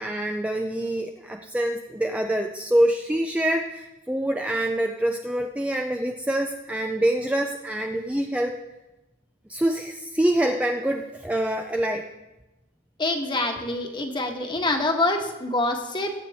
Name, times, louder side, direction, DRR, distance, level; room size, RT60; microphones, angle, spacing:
voice 1, 0.0-8.5 9.5-12.0, right 1 dB, 5° right, 3 dB, 0.4 m, -25 dB
voice 2, 13.0-16.1, left 2 dB, 20° left, 3 dB, 1.3 m, -25 dB
21.5 x 8.6 x 3.5 m, 1.0 s
head